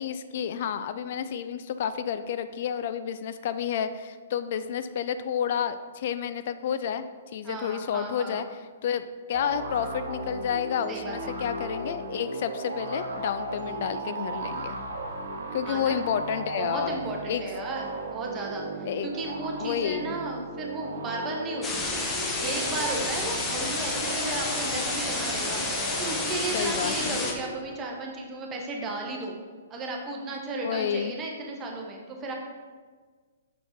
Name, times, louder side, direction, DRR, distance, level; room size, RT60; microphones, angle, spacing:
voice 1, 0.0-7.0 7.3-8.5 8.8-14.8 15.5-17.0 17.3-17.4 18.8-19.1 19.6-20.2 26.5-27.2 30.6-31.1, left 8 dB, 45° left, 11 dB, 0.3 m, -30 dB
voice 2, 7.4-8.5 10.9-11.3 15.6-16.0 16.6-29.4 29.7-32.3, right 2 dB, 20° right, 0 dB, 0.9 m, -35 dB
sound 1, 9.3-27.7, right 2 dB, 60° right, 1.0 m, -36 dB
sound 2, 21.6-27.3, left 2 dB, 15° left, 0.9 m, -30 dB
6.2 x 4.5 x 4.3 m, 1.5 s
figure-of-eight pair, 115°, 0 cm